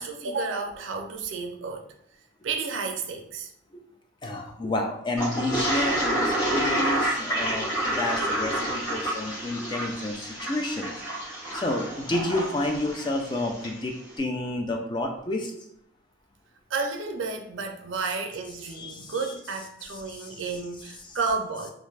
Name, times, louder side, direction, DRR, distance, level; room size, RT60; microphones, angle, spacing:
voice 1, 0.0-1.8 2.4-3.5 16.7-21.7, right 4 dB, 70° right, 5 dB, 0.4 m, -31 dB
voice 2, 4.2-10.9 11.5-15.5 18.8-19.2, left 1 dB, 25° left, 3 dB, 0.3 m, -30 dB
Toilet flush, 5.2-13.8, right 1 dB, 75° left, 1.2 m, -29 dB
2.5 x 2.3 x 3.2 m, 0.71 s
head